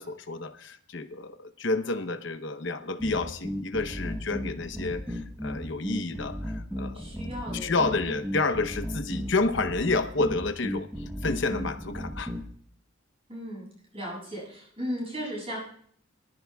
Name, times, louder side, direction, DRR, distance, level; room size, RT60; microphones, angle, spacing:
voice 1, 0.0-7.0 7.5-12.3, left 3 dB, 60° left, 10 dB, 0.9 m, -30 dB
sound 1, 3.0-12.5, equal, 5° right, 1.0 m, -35 dB
voice 2, 6.9-7.8 8.0-8.2 13.3-13.7 13.9-15.6, equal, 30° right, -4 dB, 7.6 m, -36 dB
24.5 x 14.0 x 2.3 m, 0.63 s
head